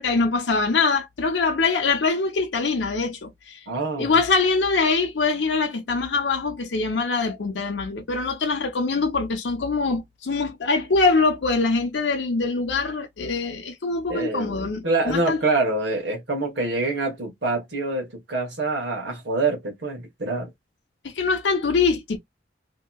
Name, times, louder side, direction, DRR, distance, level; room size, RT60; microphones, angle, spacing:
voice 1, 0.0-3.6 4.0-15.4 21.0-22.2, left 4 dB, 85° left, 0.6 m, -23 dB
voice 2, 3.7-4.1 14.1-20.5, right 3 dB, 80° right, 1.2 m, -26 dB
2.9 x 2.8 x 2.2 m
head